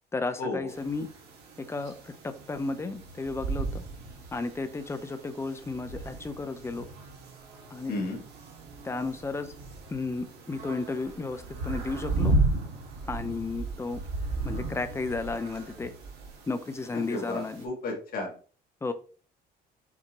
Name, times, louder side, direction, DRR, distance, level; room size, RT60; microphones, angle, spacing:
voice 1, 0.1-1.1 1.6-3.8 4.3-6.9 7.7-8.0 8.8-9.5 9.9-12.4 13.1-14.0 14.4-15.9 16.5-17.6 18.8-18.9, left 3 dB, 15° left, 9 dB, 0.6 m, -33 dB
sound 1, 0.7-17.6, right 2 dB, 80° right, 1.5 m, -35 dB
voice 2, 7.9-8.2 16.9-18.3, left 2 dB, 60° left, 1 dB, 1.8 m, -33 dB
6.0 x 2.8 x 3.0 m, 0.40 s
cardioid pair, 110°, 17 cm